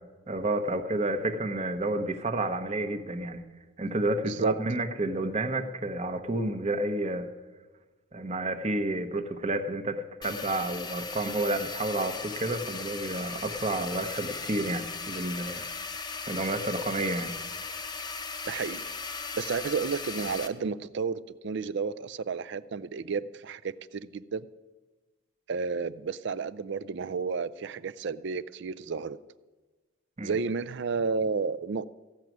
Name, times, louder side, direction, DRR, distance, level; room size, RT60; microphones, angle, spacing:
voice 1, 0.3-3.4 3.8-7.3 8.1-15.6 16.3-17.3 30.2-30.4, right 2 dB, 30° right, 7 dB, 0.9 m, -30 dB
sound 1, 10.2-20.5, left 4 dB, 20° left, 0.6 m, -37 dB
voice 2, 18.5-18.8 19.4-24.5 25.5-29.2 30.2-31.8, right 5 dB, 55° right, 17 dB, 0.4 m, -31 dB
15.0 x 6.0 x 9.2 m, 1.3 s
head